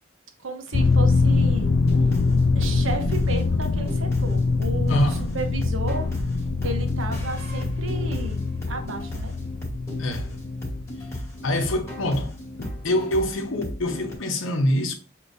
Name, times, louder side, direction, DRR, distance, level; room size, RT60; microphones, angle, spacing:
voice 1, 0.4-1.7 2.5-6.1 6.6-9.3, right 3 dB, 70° right, 0.9 m, -33 dB
sound 1, 0.7-12.0 12.3-12.4, left 3 dB, 55° left, 0.4 m, -24 dB
sound 2, 1.8-14.2, left 1 dB, 15° left, 1.4 m, -36 dB
voice 2, 4.9-5.3 10.0-10.4 11.4-14.9, left 1 dB, 75° left, 0.8 m, -25 dB
6.4 x 2.8 x 2.6 m
head